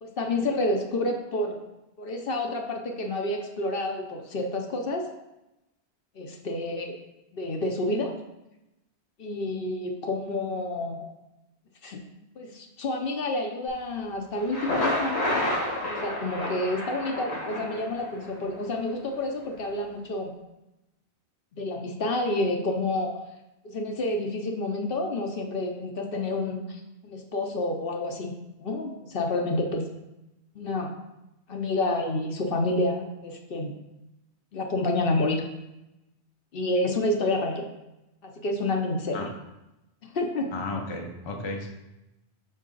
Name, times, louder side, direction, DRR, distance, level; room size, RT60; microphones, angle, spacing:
voice 1, 0.0-1.6 2.0-5.1 6.2-7.0 7.3-8.2 9.2-11.1 11.8-12.0 12.4-15.3 15.9-20.3 21.5-23.2 23.6-29.8 30.5-30.9 31.5-33.7 34.5-35.4 36.5-37.7 38.2-39.3 40.0-40.5, left 2 dB, 60° left, 3 dB, 0.9 m, -29 dB
Thunder, 14.4-18.3, left 1 dB, 85° left, 1.7 m, -30 dB
voice 2, 40.5-41.7, left 3 dB, 30° left, 2 dB, 0.6 m, -33 dB
6.1 x 4.1 x 3.8 m, 0.94 s
omnidirectional pair, 1.1 m